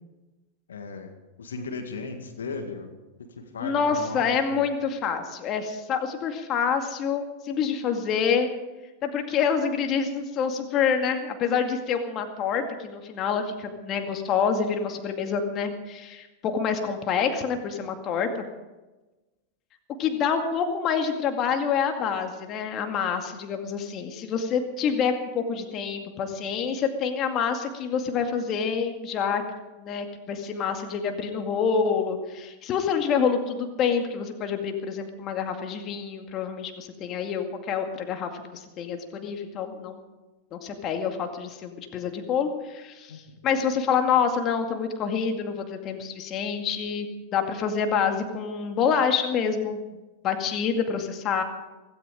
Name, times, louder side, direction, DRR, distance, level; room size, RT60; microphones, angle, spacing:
voice 1, 0.7-2.9 3.4-4.7 43.1-43.2, left 4 dB, 80° left, 5 dB, 2.1 m, -36 dB
voice 2, 3.6-8.5 9.0-18.4 20.0-29.4 29.8-40.0 40.5-49.8 50.2-51.4, left 6 dB, 40° left, 5 dB, 2.1 m, -27 dB
16.5 x 16.5 x 5.1 m, 1.1 s
hypercardioid pair, 95°, 0 cm